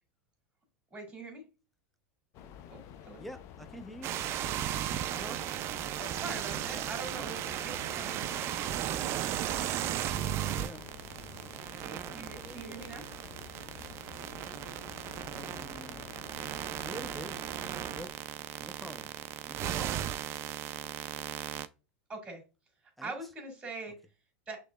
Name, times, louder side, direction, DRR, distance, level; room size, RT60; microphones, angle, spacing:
voice 1, 0.9-1.4 2.7-2.8 3.1-3.2 6.0-9.0 11.8-13.0 22.1-22.4 23.0-24.0 24.5-24.6, right 3 dB, 15° right, 2.0 m, -43 dB
sound 1, 2.3-18.1, left 9 dB, 50° left, 0.5 m, -50 dB
voice 2, 3.2-4.2 5.1-5.4 10.5-10.9 11.7-13.2 15.3-16.1 16.8-17.5 17.9-18.2 18.6-19.1 19.5-20.0 23.0-23.1, equal, ahead, 0.6 m, -47 dB
sound 2, 4.0-21.7, right 12 dB, 45° right, 0.4 m, -36 dB
6.2 x 2.9 x 2.3 m
hypercardioid pair, 100°, 6 cm